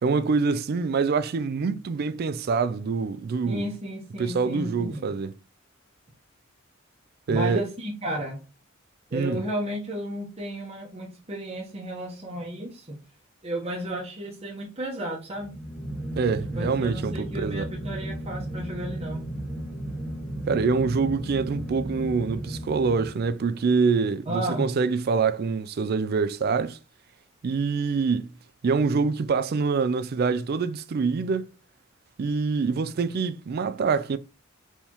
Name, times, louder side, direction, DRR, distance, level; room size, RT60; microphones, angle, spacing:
voice 1, 0.0-3.7 4.2-5.3 7.3-7.7 9.1-9.4 16.1-17.7 20.5-26.8 27.4-28.3 28.6-31.5 32.2-34.2, right 5 dB, 45° right, 0.3 m, -25 dB
voice 2, 3.4-5.1 7.3-8.4 9.1-13.0 13.4-15.5 16.5-19.3 24.3-24.8, equal, 30° right, 1.0 m, -33 dB
sound 1, 15.3-23.7, right 1 dB, 5° left, 1.0 m, -34 dB
4.4 x 3.5 x 2.9 m
head